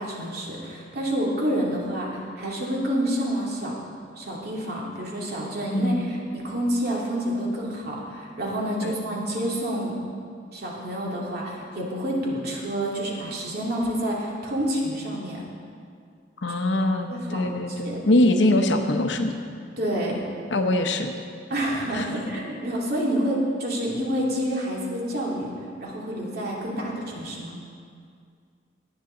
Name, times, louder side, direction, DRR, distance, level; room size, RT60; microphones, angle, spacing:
voice 1, 0.0-3.7 4.2-10.0 10.5-15.4 17.1-18.0 19.8-20.2 21.5-25.5 25.8-27.5, equal, 55° right, -3 dB, 2.7 m, -28 dB
voice 2, 5.7-6.1 8.8-9.0 16.4-19.3 20.5-21.1 21.9-22.1, left 1 dB, 65° left, 6 dB, 0.9 m, -23 dB
18.5 x 9.5 x 3.9 m, 2.2 s
head